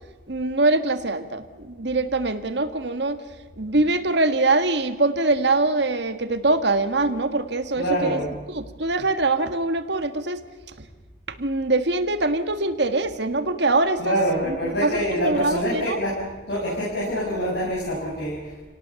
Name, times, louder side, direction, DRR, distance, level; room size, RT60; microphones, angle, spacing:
voice 1, 0.3-3.2 3.6-8.2 8.5-10.4 11.4-14.1 14.8-16.0, right 2 dB, 55° right, 9 dB, 1.7 m, -23 dB
voice 2, 7.8-8.3 14.0-16.2 16.5-18.7, equal, 60° left, -5 dB, 6.5 m, -26 dB
29.0 x 18.5 x 7.1 m, 1.3 s
head